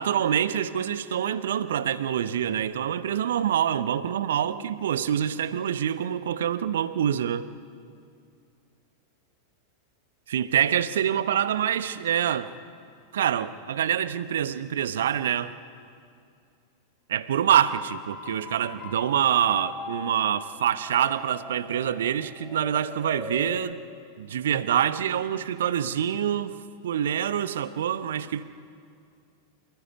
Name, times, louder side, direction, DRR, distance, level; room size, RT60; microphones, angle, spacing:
voice 1, 0.0-7.5 10.3-12.5 13.1-15.5 17.1-23.8 24.2-26.6 26.8-28.4, right 9 dB, 60° right, 14 dB, 1.0 m, -26 dB
sound 1, 17.6-23.7, left 3 dB, 15° left, 3.0 m, -41 dB
27.5 x 16.5 x 9.8 m, 2.4 s
figure-of-eight pair, 90°, 0 cm